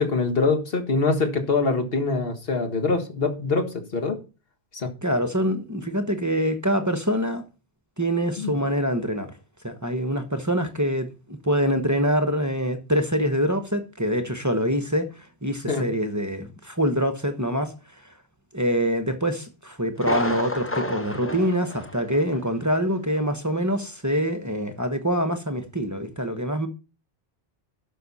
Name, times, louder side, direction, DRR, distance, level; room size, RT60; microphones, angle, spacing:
voice 1, 0.0-4.2 4.7-4.9 8.4-8.5 15.7-15.9, left 4 dB, 65° left, 1.8 m, -24 dB
voice 2, 5.0-7.4 8.0-9.3 9.6-17.7 18.0-18.1 18.5-26.7, equal, 15° right, 1.0 m, -25 dB
Thunder, 20.0-22.5 22.8-22.9 23.5-23.6, left 1 dB, 15° left, 0.9 m, -30 dB
12.0 x 6.4 x 4.1 m
omnidirectional pair, 1.1 m